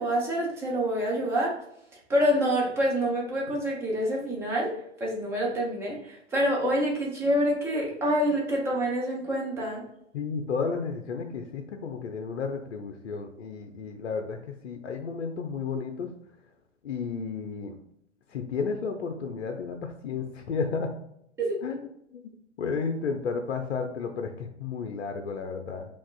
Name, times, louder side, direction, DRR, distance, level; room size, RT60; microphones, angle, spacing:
voice 1, 0.0-1.6 2.1-4.7 5.0-9.8 21.4-21.6, equal, 5° right, -2 dB, 0.5 m, -27 dB
voice 2, 10.1-14.4 14.6-16.1 16.8-17.8 18.3-20.9 21.6-21.9 22.1-22.2 22.6-25.9, left 5 dB, 60° left, 5 dB, 0.5 m, -32 dB
5.7 x 2.4 x 2.4 m, 0.76 s
figure-of-eight pair, 105°, 36 cm